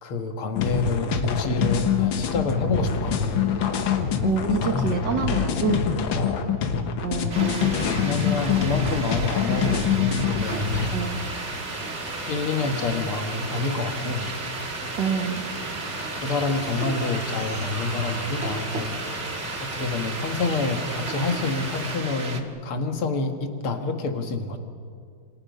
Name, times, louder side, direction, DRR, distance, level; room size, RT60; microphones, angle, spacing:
voice 1, 0.0-3.4 6.1-6.5 8.0-10.7 12.3-14.3 16.2-19.0 19.6-24.6, left 3 dB, 90° left, 6 dB, 2.6 m, -28 dB
sound 1, 0.6-10.9, left 7 dB, 65° left, 2.0 m, -25 dB
voice 2, 4.2-5.9 7.0-8.0 10.9-11.2 15.0-15.5, right 6 dB, 55° right, 5 dB, 2.2 m, -27 dB
sound 2, 7.3-22.4, right 4 dB, 35° right, 1.6 m, -34 dB
sound 3, 10.4-22.0, equal, 5° right, 1.9 m, -36 dB
28.5 x 25.5 x 5.4 m, 2.2 s
omnidirectional pair, 2.3 m